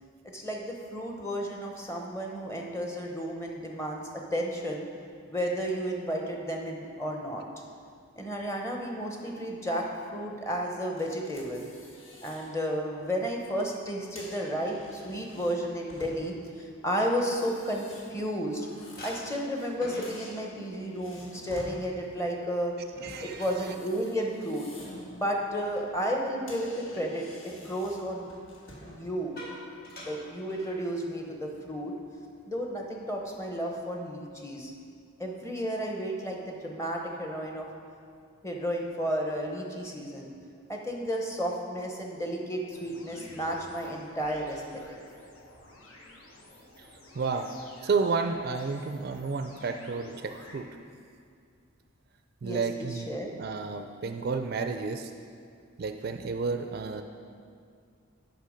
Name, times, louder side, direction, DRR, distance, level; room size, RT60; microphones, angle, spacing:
voice 1, 0.2-4.8 5.3-7.4 8.2-11.7 12.2-18.7 19.0-22.8 23.2-24.7 25.1-28.3 28.9-29.4 30.0-31.9 32.5-34.7 35.2-37.7 38.4-40.3 40.7-44.8 52.4-53.3, equal, 15° left, 1 dB, 0.8 m, -32 dB
sound 1, 11.0-12.5 12.9-13.2 13.9-16.5 17.2-19.7 20.0-21.8 23.2-25.1 25.4-25.7 26.1-26.2 26.5-29.0, left 1 dB, 70° left, 1.5 m, -50 dB
sound 2, 17.5-18.5 19.0-26.8 27.2-27.5 28.6-31.2 31.5-31.7 32.1-32.3 32.8-33.5, left 1 dB, 50° left, 1.5 m, -49 dB
voice 2, 23.0-23.4 47.2-47.5 47.8-50.7 52.4-55.1 55.8-57.0, right 4 dB, 45° right, 7 dB, 0.3 m, -31 dB
sound 3, 42.7-50.6, left 1 dB, 85° left, 1.1 m, -50 dB
8.3 x 6.0 x 5.1 m, 2.3 s
head